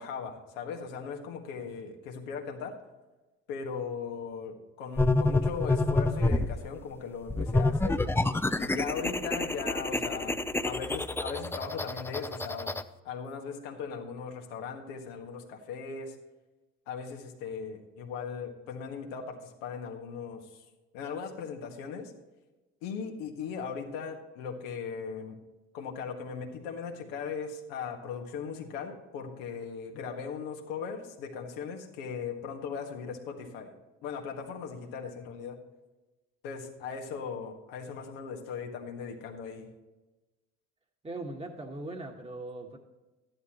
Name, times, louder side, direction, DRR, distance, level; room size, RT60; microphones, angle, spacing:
voice 1, 0.0-2.8 3.5-8.0 8.6-12.7 13.0-16.1 16.9-20.6 20.9-22.1 22.8-25.4 25.7-33.7 34.0-35.6 36.4-39.7, left 6 dB, 85° left, 2 dB, 1.8 m, -38 dB
sound 1, 5.0-6.6 7.3-12.8, left 2 dB, 5° left, 0.6 m, -28 dB
voice 2, 41.0-42.8, right 2 dB, 15° right, 2 dB, 1.5 m, -39 dB
13.0 x 11.0 x 3.0 m, 1.1 s
hypercardioid pair, 70°, 36 cm